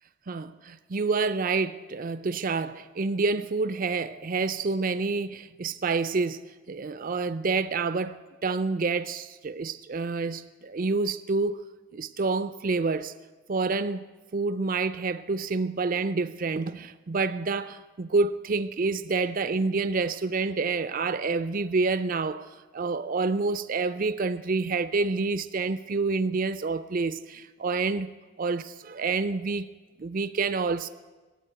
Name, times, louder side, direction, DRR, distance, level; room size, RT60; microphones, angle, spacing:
voice 1, 0.3-6.4 6.7-11.6 11.9-13.1 13.5-22.5 22.7-29.7 30.0-30.9, right 4 dB, 45° right, 0.5 m, -28 dB
17.5 x 8.1 x 9.1 m
head